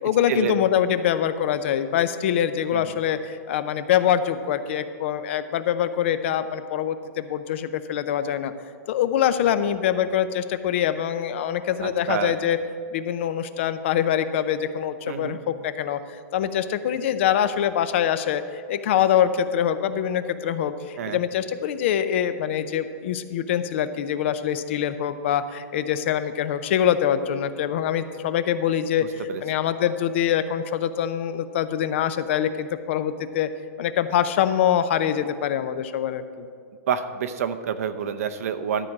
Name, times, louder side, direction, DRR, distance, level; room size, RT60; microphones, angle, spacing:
voice 1, 0.0-8.5 8.9-12.6 12.9-16.0 16.3-33.5 33.8-36.5, left 9 dB, 50° left, 12 dB, 0.5 m, -24 dB
voice 2, 11.8-12.4 15.1-15.4 21.0-21.2 29.3-29.4 36.9-38.9, right 8 dB, 65° right, 10 dB, 0.7 m, -28 dB
12.5 x 4.7 x 7.4 m, 2.1 s
supercardioid pair, 165°, 8 cm